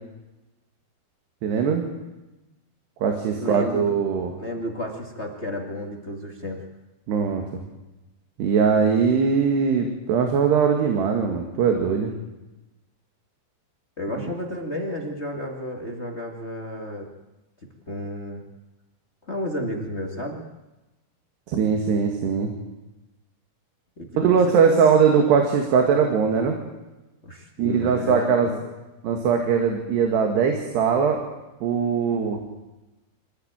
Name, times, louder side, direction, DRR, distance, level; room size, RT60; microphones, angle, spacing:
voice 1, 1.4-1.8 3.0-4.3 7.1-7.6 8.4-12.1 21.5-22.5 24.2-26.6 27.6-28.5 29.0-31.2 31.6-32.4, right 6 dB, 75° right, 3 dB, 4.0 m, -21 dB
voice 2, 3.4-3.9 4.4-6.6 14.0-17.1 17.9-18.4 19.3-20.4 24.0-24.7 27.2-28.6, left 1 dB, 30° left, 1 dB, 1.3 m, -32 dB
26.0 x 15.5 x 9.0 m, 1.0 s
omnidirectional pair, 4.9 m